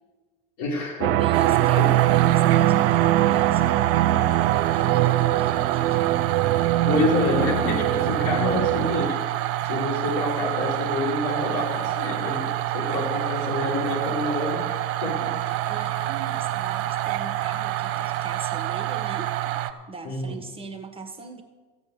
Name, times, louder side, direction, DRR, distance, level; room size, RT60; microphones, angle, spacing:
voice 1, 0.6-1.3 1.8-1.9 6.9-9.2 9.6-14.7 15.0-15.3 15.6-15.9 20.0-20.4, left 2 dB, 70° left, -3 dB, 5.3 m, -27 dB
sound 1, 1.0-9.1, right 14 dB, 75° right, 0.6 m, -22 dB
voice 2, 1.2-6.4 15.4-19.3 19.9-21.4, right 4 dB, 20° right, 5 dB, 1.5 m, -40 dB
sound 2, 1.3-19.7, right 14 dB, 50° right, 1.1 m, -27 dB
14.5 x 8.2 x 6.9 m, 1.3 s
hypercardioid pair, 100°, 29 cm